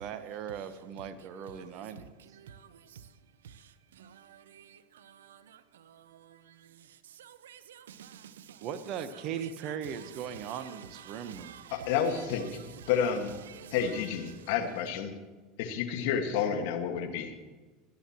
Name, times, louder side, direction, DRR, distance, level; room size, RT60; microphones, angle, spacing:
voice 1, 0.0-2.2 8.6-11.5, right 8 dB, 50° right, 1.1 m, -38 dB
voice 2, 1.0-3.2 3.4-8.7 9.1-14.5, right 9 dB, 75° right, 0.8 m, -51 dB
voice 3, 11.7-12.6 12.9-13.3 13.7-15.1 15.6-17.3, left 7 dB, 65° left, 1.8 m, -30 dB
25.0 x 10.5 x 3.1 m
hypercardioid pair, 80°, 0 cm